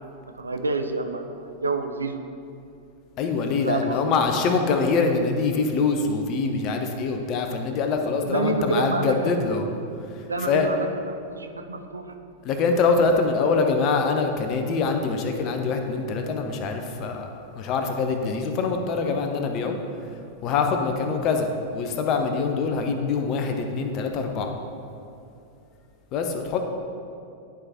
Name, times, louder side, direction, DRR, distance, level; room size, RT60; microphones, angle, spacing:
voice 1, 0.3-2.2 3.6-4.0 8.2-9.3 10.3-12.1, right 3 dB, 75° right, 7 dB, 0.4 m, -28 dB
voice 2, 3.2-9.7 10.4-10.7 12.4-19.8 20.4-24.5 26.1-26.6, left 4 dB, 40° left, 5 dB, 0.7 m, -24 dB
11.0 x 4.9 x 2.8 m, 2.6 s
figure-of-eight pair, 90°, 0 cm